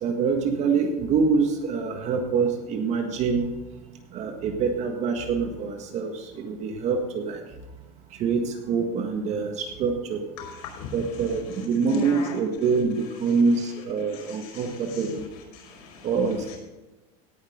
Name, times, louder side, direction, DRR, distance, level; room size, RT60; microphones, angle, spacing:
voice 1, 0.0-3.5 4.1-7.4 8.2-10.2 10.9-15.2 16.0-16.5, right 5 dB, 35° right, 4 dB, 1.7 m, -25 dB
voice 2, 10.4-11.4 11.8-12.4 14.0-15.1 15.5-16.1 16.5-16.6, left 6 dB, 75° left, 0 dB, 5.1 m, -39 dB
17.5 x 6.6 x 5.0 m, 1.1 s
supercardioid pair, 150°, 19 cm